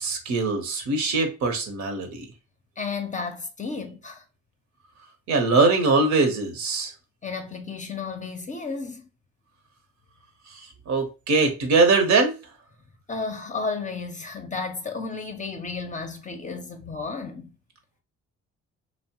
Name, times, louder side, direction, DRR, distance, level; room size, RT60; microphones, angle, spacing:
voice 1, 0.0-2.3 5.3-6.9 10.9-12.3, right 3 dB, 65° right, 0.9 m, -22 dB
voice 2, 2.8-4.2 7.2-9.1 13.1-17.6, left 4 dB, 25° left, 0.6 m, -33 dB
2.9 x 2.0 x 2.8 m
cardioid pair, 90°, 30 cm